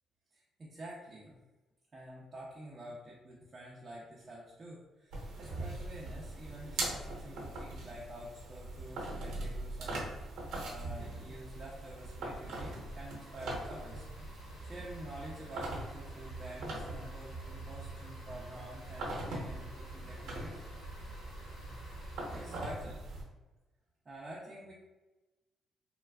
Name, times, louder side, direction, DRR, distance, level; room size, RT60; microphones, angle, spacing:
voice 1, 0.3-1.4 1.9-10.0 10.5-14.1 14.6-20.6 22.2-23.0 24.0-24.7, right 1 dB, 35° right, -5 dB, 0.5 m, -48 dB
sound 1, 5.1-23.2, right 2 dB, 80° right, 0.8 m, -41 dB
sound 2, 9.5-22.7, left 1 dB, 90° left, 0.8 m, -57 dB
3.2 x 2.2 x 2.3 m, 1.1 s
cardioid pair, 90°, 0 cm